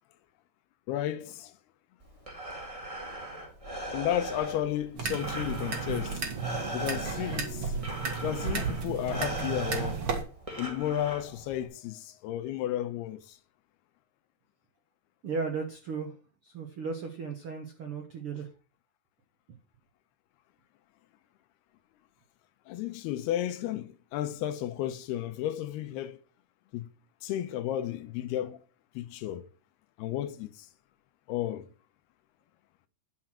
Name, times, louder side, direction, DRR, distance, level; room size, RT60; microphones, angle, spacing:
voice 1, 0.9-1.5 3.9-6.2 6.7-7.7 8.2-10.1 10.6-13.4 22.7-26.2 26.7-26.9 27.2-28.6 29.0-29.5 30.0-30.7 31.3-31.7, left 12 dB, 85° left, 2.7 m, -33 dB
Breathing, 2.0-11.7, right 1 dB, 15° right, 1.2 m, -39 dB
sound 1, 5.0-10.2, right 5 dB, 45° right, 1.8 m, -33 dB
voice 2, 15.2-16.2 16.4-18.5, right 5 dB, 75° right, 1.2 m, -35 dB
10.5 x 6.0 x 6.3 m
omnidirectional pair, 4.7 m